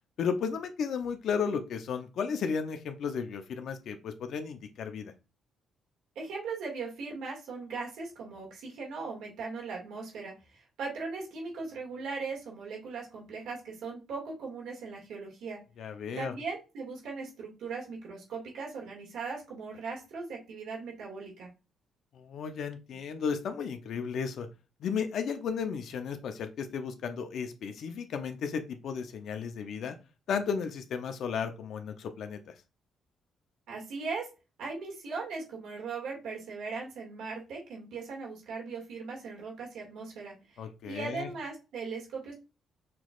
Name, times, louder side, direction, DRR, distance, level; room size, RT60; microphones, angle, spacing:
voice 1, 0.2-5.1 15.8-16.3 22.1-24.5 24.8-29.9 30.3-32.5 40.6-41.3, left 6 dB, 70° left, 7 dB, 0.7 m, -34 dB
voice 2, 6.2-15.6 16.2-21.5 33.7-34.3 34.6-42.3, right 4 dB, 80° right, -2 dB, 2.1 m, -39 dB
6.0 x 3.1 x 2.4 m, 0.30 s
cardioid pair, 90°, 0 cm